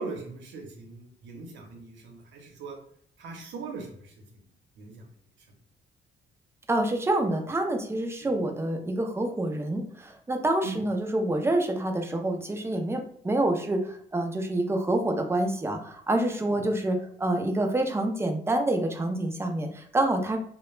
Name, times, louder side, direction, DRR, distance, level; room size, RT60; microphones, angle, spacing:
voice 1, 0.0-2.8 3.2-4.4 4.8-5.0 8.2-8.3 10.6-10.8 16.5-16.6, right 3 dB, 80° right, 1 dB, 0.7 m, -40 dB
voice 2, 6.7-20.4, right 1 dB, 15° right, 4 dB, 0.4 m, -27 dB
2.2 x 2.0 x 3.1 m, 0.63 s
cardioid pair, 85°, 19 cm